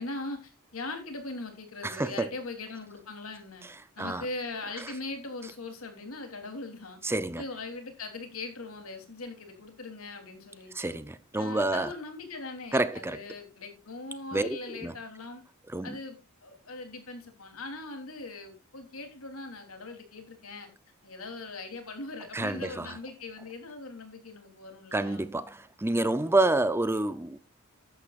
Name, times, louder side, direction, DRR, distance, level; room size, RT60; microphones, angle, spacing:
voice 1, 0.0-3.7 3.9-7.0 7.4-11.0 11.4-15.4 15.8-20.7 21.0-25.2 26.3-26.4, left 3 dB, 75° left, 3.4 m, -40 dB
voice 2, 1.8-2.3 4.0-4.3 4.8-4.9 7.0-7.4 10.7-11.9 12.7-13.2 14.3-15.0 15.7-16.0 22.3-23.0 24.9-27.4, right 2 dB, 10° right, 0.6 m, -28 dB
14.5 x 11.5 x 2.5 m
head